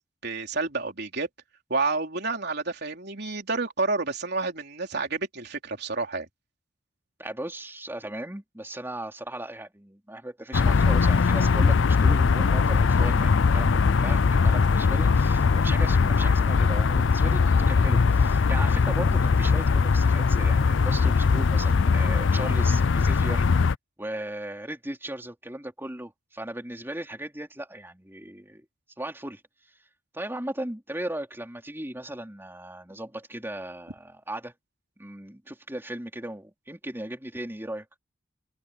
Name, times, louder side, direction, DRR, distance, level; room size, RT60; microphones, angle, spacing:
voice 1, 0.2-1.3 1.7-6.3, right 3 dB, 55° right, 3.8 m, -29 dB
voice 2, 7.2-23.5 24.0-28.7 29.0-29.4 30.1-34.5 35.0-37.9, right 1 dB, 10° right, 3.6 m, -37 dB
sound 1, 10.5-23.7, left 5 dB, 65° left, 0.5 m, -21 dB
head